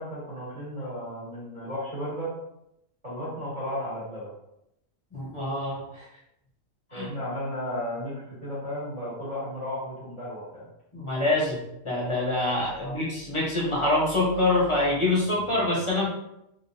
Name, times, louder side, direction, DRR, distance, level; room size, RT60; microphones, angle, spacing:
voice 1, 0.0-2.3 3.0-4.3 6.9-8.1 8.4-10.6 12.8-12.9, equal, 25° right, -10 dB, 1.6 m, -34 dB
voice 2, 5.1-6.1 6.9-7.1 10.9-16.1, left 2 dB, 25° left, -5 dB, 1.1 m, -25 dB
3.6 x 3.1 x 2.7 m, 0.82 s
omnidirectional pair, 1.4 m